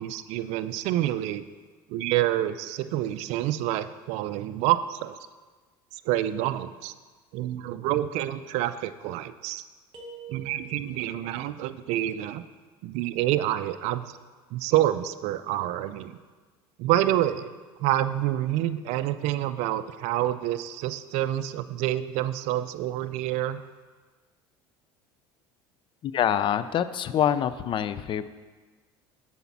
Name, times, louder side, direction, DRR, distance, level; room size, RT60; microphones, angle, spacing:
voice 1, 0.0-1.4 1.9-5.2 5.9-6.9 7.3-9.6 10.3-12.4 12.8-14.2 14.5-16.1 16.8-17.5 17.8-23.6, right 13 dB, 65° right, 12 dB, 0.4 m, -27 dB
sound 1, 9.9-11.1, right 6 dB, 50° right, 1.3 m, -45 dB
voice 2, 26.0-28.3, left 9 dB, 40° left, 13 dB, 0.4 m, -25 dB
6.9 x 4.2 x 5.9 m, 1.4 s
supercardioid pair, 85°, 13 cm